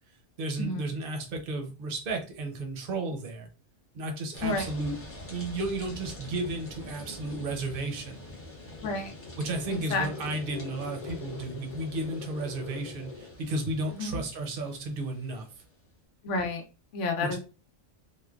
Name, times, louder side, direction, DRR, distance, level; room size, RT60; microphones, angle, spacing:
voice 1, 0.4-3.5 3.9-4.9 5.3-8.2 9.4-15.5 17.2-17.4, right 2 dB, 55° right, 3 dB, 0.8 m, -33 dB
sound 1, 4.3-15.8, left 1 dB, 25° left, 0.3 m, -46 dB
sound 2, 8.5-13.4, left 5 dB, 40° left, 0.8 m, -43 dB
voice 2, 16.2-16.6 16.9-17.4, left 3 dB, 80° left, 3 dB, 1.0 m, -30 dB
3.1 x 2.1 x 2.3 m, 0.34 s
omnidirectional pair, 1.2 m